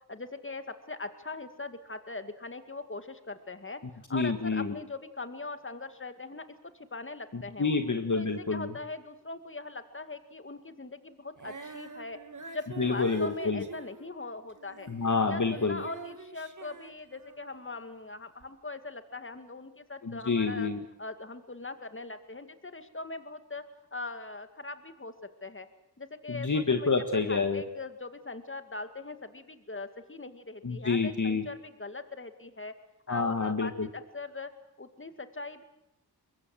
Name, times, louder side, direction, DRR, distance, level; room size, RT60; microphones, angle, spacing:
voice 1, 0.1-3.8 4.1-6.5 6.7-7.8 8.2-12.2 12.5-14.9 15.3-20.7 21.0-23.6 23.9-25.1 25.4-25.7 26.0-26.9 27.3-32.7 33.1-34.5 34.8-35.6, left 3 dB, 30° left, 9 dB, 2.2 m, -41 dB
voice 2, 4.1-4.7 7.3-8.7 12.8-13.6 14.9-15.8 20.0-20.8 26.3-27.6 30.6-31.4 33.1-33.9, left 4 dB, 50° left, 6 dB, 1.8 m, -28 dB
Female singing, 11.3-17.7 18.4-18.5, right 3 dB, 50° right, 2.5 m, -45 dB
24.0 x 21.5 x 7.8 m, 0.82 s
cardioid pair, 60°, 39 cm